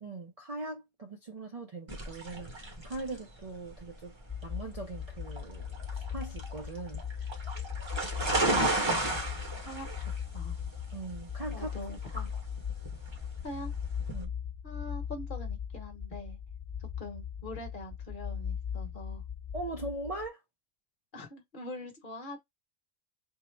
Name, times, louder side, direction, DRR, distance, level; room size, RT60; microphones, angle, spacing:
voice 1, 0.0-4.1 4.4-7.3 10.9-11.7 14.1-14.3 19.5-20.4, right 2 dB, 45° right, 0.5 m, -40 dB
sound 1, 1.9-14.2, right 2 dB, 25° right, 1.0 m, -34 dB
sound 2, 4.3-20.3, left 8 dB, 15° left, 0.6 m, -39 dB
voice 2, 9.6-10.6 11.5-12.4 13.4-13.7 14.6-16.4 17.0-19.2 21.1-22.4, left 1 dB, 50° left, 1.1 m, -43 dB
3.7 x 2.0 x 4.3 m
omnidirectional pair, 1.2 m